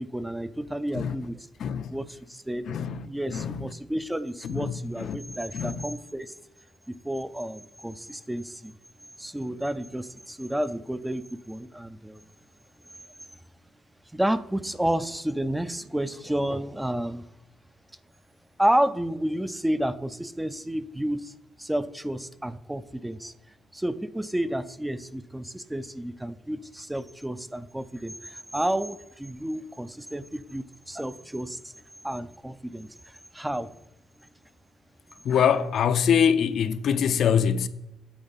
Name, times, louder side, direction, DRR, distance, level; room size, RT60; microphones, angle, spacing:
voice 1, 0.0-1.4 1.9-2.7 3.1-6.3 6.9-8.8 9.2-12.2 14.1-17.2 18.6-21.3 21.6-23.3 23.7-31.7 32.0-32.9 33.3-33.7, right 1 dB, 5° right, 0.4 m, -30 dB
voice 2, 1.6-1.9 2.7-3.7 4.4-5.9 35.2-37.7, left 7 dB, 65° left, 0.5 m, -25 dB
8.8 x 3.9 x 5.6 m
cardioid pair, 90°, 0 cm